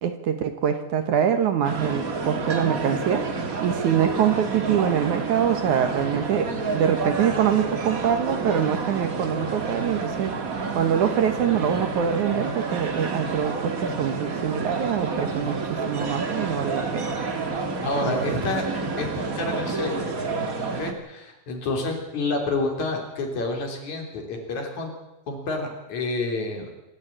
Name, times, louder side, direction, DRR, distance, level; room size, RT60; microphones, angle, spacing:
voice 1, 0.0-3.3 3.6-10.3 10.7-17.1 18.0-18.4, right 8 dB, 65° right, 8 dB, 2.2 m, -24 dB
sound 1, 1.6-20.9, right 4 dB, 45° right, 1.0 m, -29 dB
voice 2, 17.8-18.6 19.0-20.1 20.8-24.9 25.3-26.7, left 3 dB, 50° left, 3 dB, 4.6 m, -29 dB
26.0 x 13.0 x 8.9 m, 0.99 s
omnidirectional pair, 4.5 m